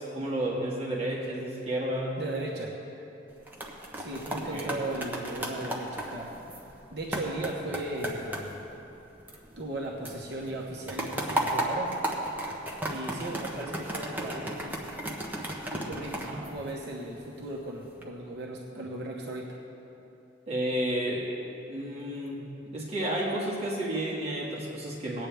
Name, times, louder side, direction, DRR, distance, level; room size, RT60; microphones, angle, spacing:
voice 1, 0.0-2.2 4.2-4.9 16.3-16.5 20.5-21.3 21.7-25.3, right 1 dB, 30° right, -6 dB, 1.9 m, -32 dB
voice 2, 2.2-2.8 3.9-6.3 6.9-8.6 9.6-11.9 12.8-14.7 15.7-19.6, right 1 dB, 60° right, -2 dB, 1.1 m, -36 dB
sound 1, 3.3-9.8 10.0-17.2 17.7-18.0, right 1 dB, 10° right, 0.9 m, -35 dB
19.5 x 8.9 x 3.5 m, 3.0 s
head